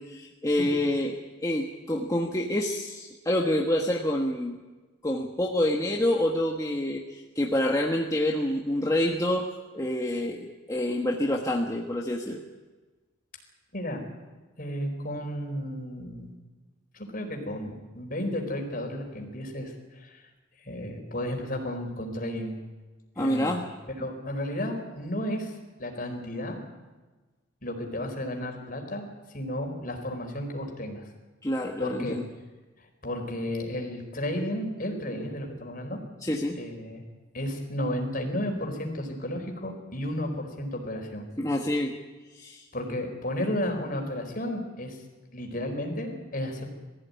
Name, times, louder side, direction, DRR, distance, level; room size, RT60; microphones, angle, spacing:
voice 1, 0.0-4.6 5.0-9.5 9.7-12.4 23.2-23.7 31.4-32.3 36.2-36.6 41.4-41.9 42.3-42.6, left 1 dB, 15° left, 0 dB, 1.4 m, -27 dB
voice 2, 14.6-16.3 16.9-20.3 20.6-22.6 23.2-23.6 24.0-26.6 27.6-29.1 29.3-31.1 31.8-32.2 33.0-36.0 36.6-37.0 37.3-41.3 42.7-45.0 45.3-46.7, left 1 dB, 45° left, 3 dB, 4.5 m, -33 dB
21.0 x 15.5 x 9.6 m, 1.2 s
head